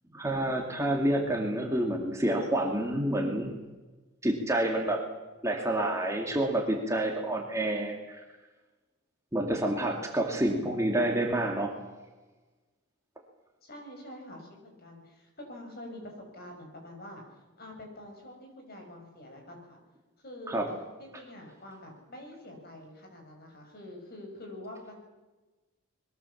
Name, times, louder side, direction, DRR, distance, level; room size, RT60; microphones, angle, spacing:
voice 1, 0.1-3.6 4.2-5.1 5.4-8.2 9.3-11.7 20.5-20.7, right 1 dB, 15° right, 1 dB, 2.3 m, -28 dB
voice 2, 13.6-17.2 17.6-19.8 20.2-20.7 21.0-25.0, left 1 dB, 45° left, 2 dB, 6.8 m, -46 dB
23.0 x 22.0 x 7.3 m, 1.2 s
head